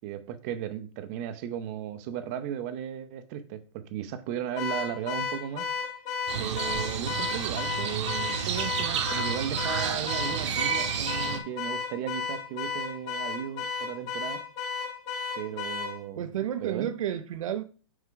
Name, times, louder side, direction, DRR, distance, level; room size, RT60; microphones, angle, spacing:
voice 1, 0.0-5.7 6.4-14.4 15.4-16.3 16.6-16.9, right 10 dB, 30° right, 0.5 m, -36 dB
Car / Alarm, 4.6-16.0, left 5 dB, 20° left, 0.9 m, -33 dB
Crow, 6.3-11.4, right 7 dB, 55° right, 1.1 m, -30 dB
voice 2, 16.2-17.6, right 10 dB, 75° right, 0.6 m, -31 dB
5.9 x 4.5 x 3.7 m
hypercardioid pair, 165°, 17 cm